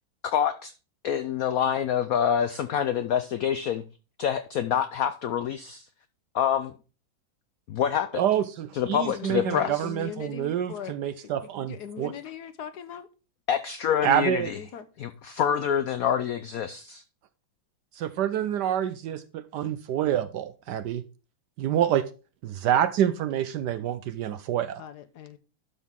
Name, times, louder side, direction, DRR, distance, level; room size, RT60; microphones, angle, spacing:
voice 1, 0.2-0.7 1.0-3.8 4.2-5.9 6.3-6.7 7.7-8.2 8.7-9.8 13.5-14.6 15.0-17.0, left 8 dB, 85° left, 0.7 m, -26 dB
voice 2, 8.1-12.1 14.0-14.5 18.0-21.0 21.6-22.1 22.4-24.8, right 10 dB, 70° right, 1.0 m, -27 dB
voice 3, 9.1-10.9 11.6-13.1 14.5-14.9 24.8-25.4, left 8 dB, 65° left, 1.1 m, -39 dB
12.0 x 6.0 x 3.7 m
omnidirectional pair, 2.2 m